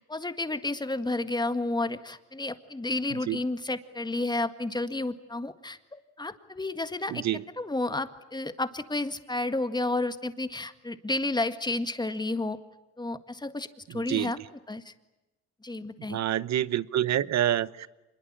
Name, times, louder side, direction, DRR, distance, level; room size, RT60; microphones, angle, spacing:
voice 1, 0.1-7.2 7.6-12.6 13.0-14.4 14.7-14.9 15.6-16.2, left 2 dB, 15° left, 10 dB, 1.8 m, -31 dB
voice 2, 7.1-7.4 13.9-14.3 16.1-17.9, right 11 dB, 65° right, 18 dB, 0.9 m, -27 dB
26.0 x 21.5 x 8.9 m, 1.1 s
cardioid pair, 90°, 29 cm